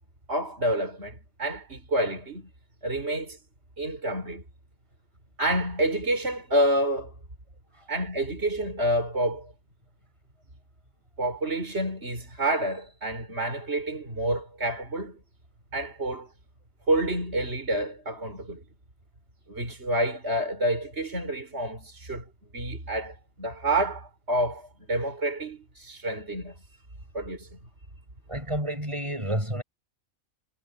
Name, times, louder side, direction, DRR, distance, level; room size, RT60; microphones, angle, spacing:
voice 1, 0.3-2.5 2.8-3.4 3.8-4.4 5.4-7.1 7.9-9.5 11.2-15.2 15.7-16.3 16.9-18.6 19.5-22.2 22.5-26.5 27.1-27.5, right 1 dB, 50° right, 5.5 m, -28 dB
voice 2, 28.3-29.6, right 1 dB, 20° right, 7.6 m, -29 dB
omnidirectional pair, 1.4 m